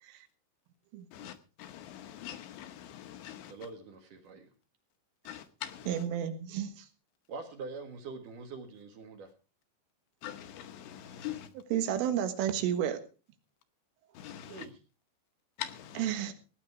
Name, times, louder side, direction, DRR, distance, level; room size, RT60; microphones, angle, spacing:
voice 1, 1.1-3.5 5.2-6.1 10.2-11.5 14.1-14.7 15.6-16.1, left 11 dB, 75° left, 2.9 m, -43 dB
voice 2, 3.5-4.5 7.3-9.3 14.5-14.7, right 4 dB, 55° right, 2.7 m, -44 dB
voice 3, 5.9-6.9 11.7-13.0 16.0-16.3, right 10 dB, 90° right, 4.2 m, -31 dB
17.5 x 9.6 x 4.7 m
omnidirectional pair, 5.7 m